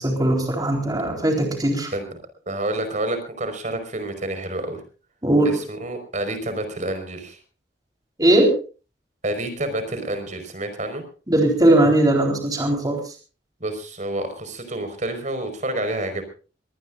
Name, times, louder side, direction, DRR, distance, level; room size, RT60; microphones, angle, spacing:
voice 1, 0.0-1.9 5.2-5.5 8.2-8.6 11.3-13.0, right 1 dB, 20° right, 2 dB, 4.1 m, -19 dB
voice 2, 2.4-4.8 5.4-7.4 9.2-11.0 13.6-16.2, right 1 dB, 45° right, 8 dB, 5.1 m, -28 dB
23.5 x 19.5 x 2.6 m, 0.36 s
head